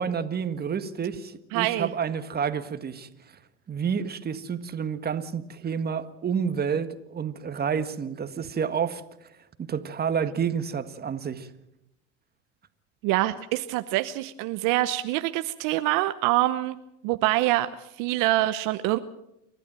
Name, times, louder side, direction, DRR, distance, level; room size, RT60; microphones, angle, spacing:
voice 1, 0.0-3.1 3.7-9.3 9.6-11.5, right 7 dB, 25° right, 1.7 m, -29 dB
voice 2, 1.5-1.9 13.0-19.0, right 16 dB, 60° right, 1.0 m, -25 dB
29.5 x 12.0 x 7.6 m
supercardioid pair, 100°, 36 cm